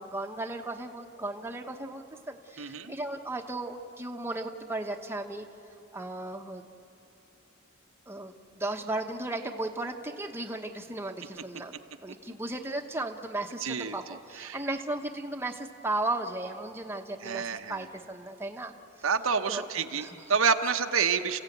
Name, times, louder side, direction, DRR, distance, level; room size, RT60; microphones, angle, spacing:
voice 1, 0.0-5.5 5.9-6.7 8.1-18.7 19.5-19.7 19.9-20.2, right 2 dB, 10° right, 3 dB, 1.0 m, -35 dB
voice 2, 2.6-2.9 13.6-14.6 17.2-17.8 19.0-21.4, right 6 dB, 80° right, 6 dB, 1.0 m, -28 dB
29.5 x 15.5 x 9.3 m, 2.9 s
head